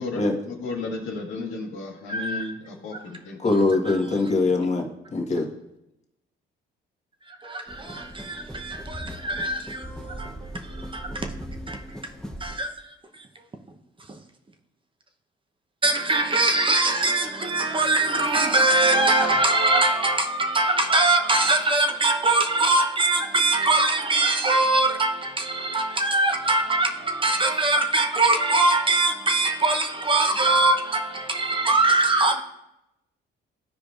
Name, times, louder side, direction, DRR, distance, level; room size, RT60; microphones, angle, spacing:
voice 1, 0.0-3.5 5.3-5.4, left 3 dB, 85° left, 1.5 m, -34 dB
voice 2, 2.1-2.5 3.9-4.0 7.3-11.3 11.7-12.0 12.4-13.3 15.8-32.4, right 2 dB, 25° right, 0.8 m, -22 dB
voice 3, 3.4-5.5, left 3 dB, 35° left, 1.5 m, -22 dB
sound 1, 7.7-12.7, equal, 5° left, 0.8 m, -39 dB
14.0 x 4.8 x 2.5 m
cardioid pair, 90°, 20 cm